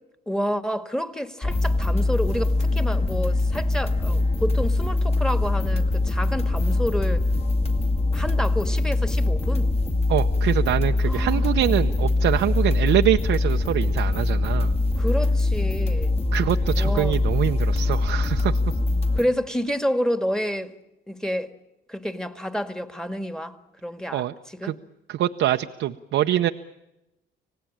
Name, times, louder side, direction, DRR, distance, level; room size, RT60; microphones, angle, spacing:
voice 1, 0.3-7.2 8.1-9.7 11.0-12.1 15.0-16.2 16.7-17.2 19.1-20.7 21.1-21.5 21.9-23.6 23.8-24.8, equal, 5° left, 1.7 m, -29 dB
sound 1, 1.4-19.2, left 2 dB, 30° left, 2.1 m, -23 dB
voice 2, 10.1-14.7 16.3-18.6 24.1-24.3 24.6-24.7 25.1-26.5, right 12 dB, 80° right, 0.8 m, -24 dB
26.0 x 18.0 x 8.7 m
cardioid pair, 90°, 20 cm